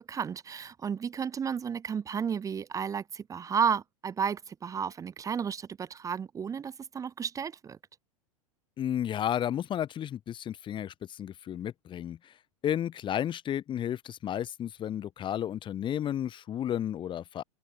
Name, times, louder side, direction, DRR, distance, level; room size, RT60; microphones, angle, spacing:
voice 1, 0.0-7.8, right 7 dB, 15° right, 1.3 m, -32 dB
voice 2, 8.8-12.3 12.6-17.4, left 10 dB, 25° left, 3.1 m, -32 dB
open air
figure-of-eight pair, 90°, 19 cm